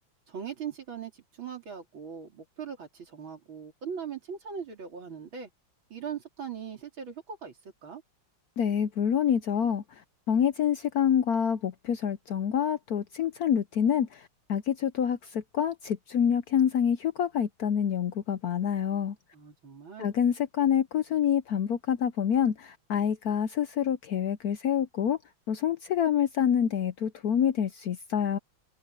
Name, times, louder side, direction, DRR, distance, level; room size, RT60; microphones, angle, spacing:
voice 1, 0.3-5.5 5.9-7.6 7.8-8.0 19.3-20.1, right 7 dB, 75° right, 4.0 m, -40 dB
voice 2, 8.6-9.8 10.3-19.2 20.0-25.2 25.5-28.4, left 8 dB, 65° left, 1.0 m, -27 dB
omnidirectional pair, 2.2 m